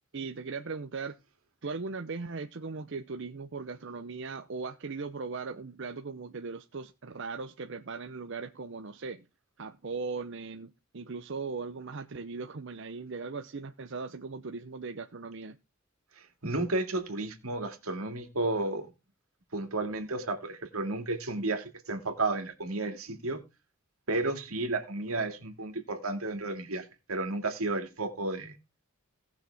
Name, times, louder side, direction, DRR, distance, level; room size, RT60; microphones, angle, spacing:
voice 1, 0.1-1.2 1.6-9.2 9.6-15.6, right 4 dB, 60° right, 0.7 m, -38 dB
voice 2, 16.2-18.9 19.5-23.4 24.1-28.5, right 2 dB, 85° right, 2.5 m, -32 dB
18.5 x 6.4 x 3.5 m
head